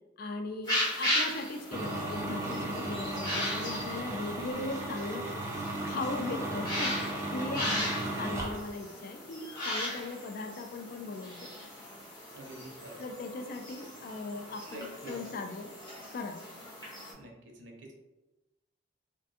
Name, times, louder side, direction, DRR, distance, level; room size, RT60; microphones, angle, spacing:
voice 1, 0.2-5.3 5.8-11.5 13.0-15.7 16.1-16.5, left 3 dB, 55° left, 5 dB, 0.3 m, -38 dB
sound 1, 0.6-17.1, left 1 dB, 20° left, 0.8 m, -37 dB
sound 2, 1.7-8.6, right 1 dB, 15° right, 0.4 m, -35 dB
voice 2, 12.3-13.0 14.6-15.1 17.1-17.9, right 2 dB, 80° right, 0 dB, 0.6 m, -46 dB
2.5 x 2.2 x 2.6 m, 1.1 s
head